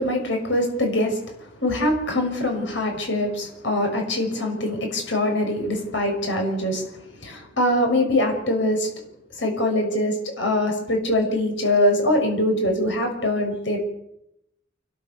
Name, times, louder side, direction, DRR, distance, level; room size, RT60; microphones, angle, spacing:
voice 1, 0.0-6.8 7.2-8.9 9.4-13.8, left 1 dB, 70° left, 2 dB, 6.3 m, -23 dB
29.0 x 13.0 x 7.1 m, 0.82 s
head